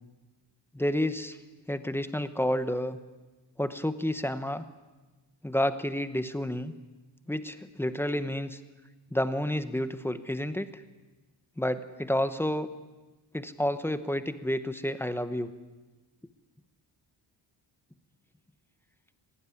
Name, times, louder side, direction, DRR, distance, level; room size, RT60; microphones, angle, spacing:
voice 1, 0.7-1.4 1.7-3.0 3.6-4.6 5.4-6.7 7.3-8.6 9.1-10.8 11.6-12.7 13.3-15.5, left 1 dB, 5° left, 11 dB, 1.0 m, -30 dB
27.0 x 18.0 x 9.9 m, 1.2 s
wide cardioid pair, 175°, 43 cm